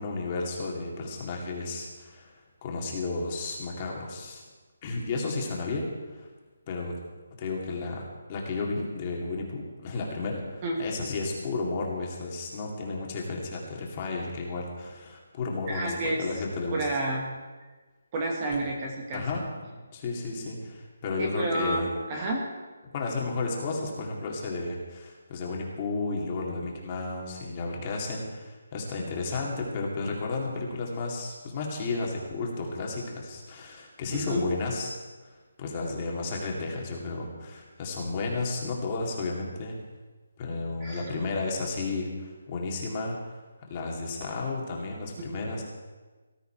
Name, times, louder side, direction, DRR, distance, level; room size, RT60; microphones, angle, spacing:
voice 1, 0.0-2.3 2.6-4.4 4.8-5.9 6.1-6.3 6.7-7.0 7.4-16.9 19.1-21.9 22.9-34.9 35.2-39.8 40.4-43.4 43.7-45.6, left 3 dB, 20° left, -1 dB, 2.3 m, -33 dB
voice 2, 15.7-16.3 16.7-17.2 18.1-19.2 21.2-21.8 22.1-22.4 34.1-34.4 40.8-41.2 45.2-45.3, right 1 dB, 20° right, 0 dB, 1.6 m, -30 dB
19.0 x 13.0 x 4.5 m, 1.3 s
hypercardioid pair, 175°, 0 cm